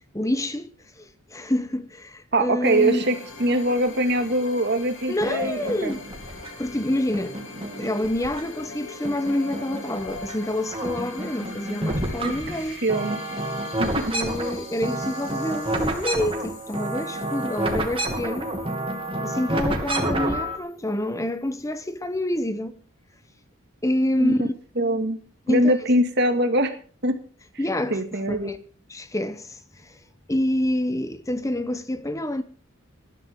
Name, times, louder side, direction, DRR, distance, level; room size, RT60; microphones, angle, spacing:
voice 1, 0.1-3.1 5.1-6.0 6.6-7.4 7.8-12.8 13.8-18.6 19.2-22.8 23.8-24.5 25.5-25.7 27.6-28.0 28.3-28.6 28.9-30.0 30.3-32.4, left 1 dB, 15° left, 0.8 m, -27 dB
voice 2, 2.3-5.9 12.2-12.3 12.8-13.2 13.8-14.1 24.2-24.5 24.8-25.2 25.5-26.7 27.0-27.2 27.9-28.5, right 1 dB, 50° right, 2.1 m, -23 dB
sound 1, 2.6-21.1, left 4 dB, 65° left, 4.0 m, -43 dB
sound 2, 5.2-6.7 7.1-8.7 9.0-10.3 10.6-20.6, right 1 dB, 25° right, 2.5 m, -30 dB
19.5 x 12.0 x 3.7 m
head